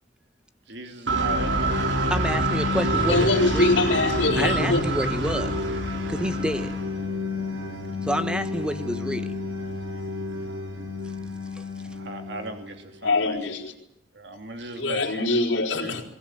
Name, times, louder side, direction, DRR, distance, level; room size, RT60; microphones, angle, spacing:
voice 1, 0.7-1.8 11.9-13.4 14.1-15.3 15.8-15.9, right 1 dB, 65° right, 2.7 m, -37 dB
sound 1, 1.1-12.8, equal, 85° right, 3.1 m, -28 dB
voice 2, 2.1-3.3 3.5-3.7 4.4-5.6 6.1-6.8 8.0-9.3 11.5-11.7, equal, 5° right, 1.2 m, -28 dB
Motor vehicle (road), 2.9-11.9, left 1 dB, 35° right, 7.4 m, -40 dB
voice 3, 3.1-4.8 13.0-13.7 14.7-16.0, left 2 dB, 85° left, 4.5 m, -23 dB
21.5 x 19.5 x 9.1 m
head